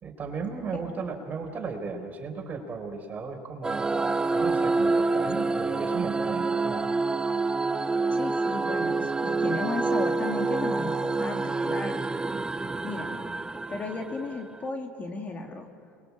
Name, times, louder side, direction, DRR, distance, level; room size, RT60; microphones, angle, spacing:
voice 1, 0.0-6.8, right 5 dB, 30° right, 4 dB, 4.6 m, -35 dB
sound 1, 3.6-14.6, right 3 dB, 15° right, 0.9 m, -27 dB
voice 2, 8.1-12.0 12.8-13.2 13.7-15.7, left 3 dB, 30° left, 3 dB, 2.9 m, -34 dB
28.0 x 22.0 x 8.6 m, 2.4 s
hypercardioid pair, 90°, 5 cm